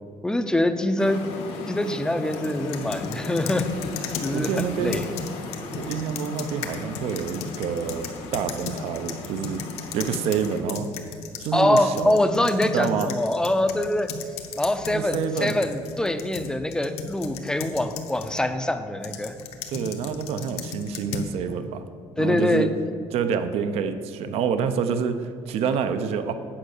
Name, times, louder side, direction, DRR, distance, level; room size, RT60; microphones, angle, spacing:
voice 1, 0.2-1.2 1.7-3.7 4.2-5.1 11.5-14.1 14.6-19.3 22.2-22.7, left 1 dB, 5° left, 8 dB, 0.4 m, -24 dB
sound 1, 1.0-10.6, left 3 dB, 90° left, 1.5 m, -37 dB
sound 2, 2.3-11.5 11.8-18.4 19.0-21.3, left 6 dB, 70° left, 0.9 m, -36 dB
voice 2, 4.3-5.0 5.7-9.6 9.9-10.9 11.4-12.1 12.7-13.1 14.9-15.6 19.7-21.8 22.2-22.7 23.1-26.3, right 7 dB, 70° right, 10 dB, 0.6 m, -27 dB
8.6 x 5.4 x 6.5 m, 2.4 s
cardioid pair, 145°, 11 cm